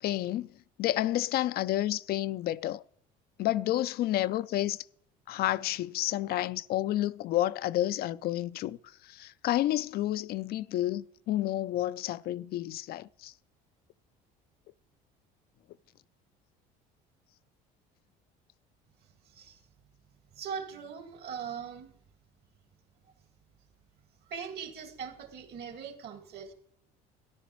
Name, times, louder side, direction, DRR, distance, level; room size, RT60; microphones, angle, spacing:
voice 1, 0.0-0.5 0.8-2.8 3.4-4.8 5.3-8.8 9.0-13.3, left 14 dB, 55° left, 0.4 m, -30 dB
voice 2, 19.3-19.6 20.4-22.0 24.3-26.5, right 7 dB, 60° right, 1.9 m, -40 dB
13.5 x 10.5 x 3.1 m
supercardioid pair, 90°, 19 cm